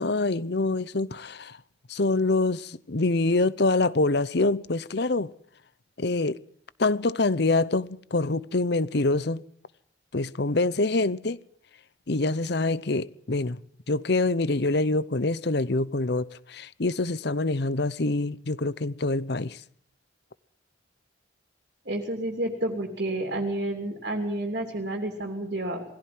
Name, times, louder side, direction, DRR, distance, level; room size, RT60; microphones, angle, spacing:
voice 1, 0.0-1.6 1.9-5.3 6.0-6.4 6.8-9.4 10.1-11.4 12.1-13.6 13.9-19.6, left 2 dB, 55° left, 0.8 m, -25 dB
voice 2, 21.8-25.8, right 1 dB, 55° right, 3.0 m, -30 dB
21.0 x 16.0 x 9.4 m
head